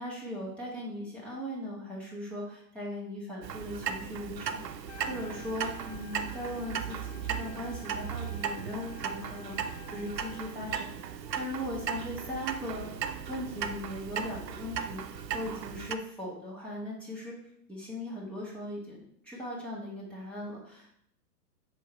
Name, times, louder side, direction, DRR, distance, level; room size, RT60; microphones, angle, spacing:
voice 1, 0.0-10.9 11.4-12.9 13.3-17.4 17.7-20.9, left 1 dB, ahead, -6 dB, 1.7 m, -39 dB
Clock, 3.4-16.0, right 7 dB, 80° right, 0.7 m, -37 dB
Trumpet, 4.8-10.6, left 9 dB, 45° left, 0.5 m, -51 dB
7.4 x 3.9 x 4.2 m, 0.70 s
hypercardioid pair, 125°, 50 cm